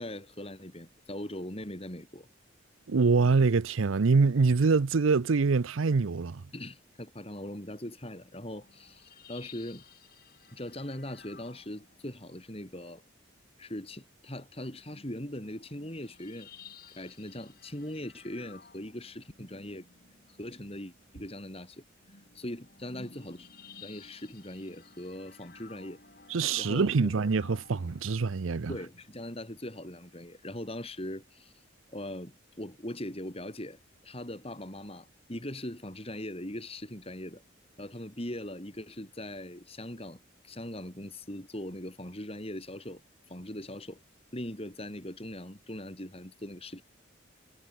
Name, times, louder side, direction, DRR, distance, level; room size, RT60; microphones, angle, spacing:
voice 1, 0.0-2.3 6.5-9.8 10.5-13.0 13.6-16.5 16.9-19.9 20.3-21.8 22.3-23.5 23.8-26.0 26.6-27.3 28.7-31.5 31.9-33.8 34.0-37.4 37.8-43.0 43.3-44.0 44.3-46.8, left 1 dB, 30° left, 3.4 m, -40 dB
voice 2, 2.9-6.4 26.3-28.7, right 4 dB, 80° right, 0.6 m, -25 dB
sound 1, 8.5-12.4 14.7-28.2, left 5 dB, 45° left, 3.4 m, -55 dB
head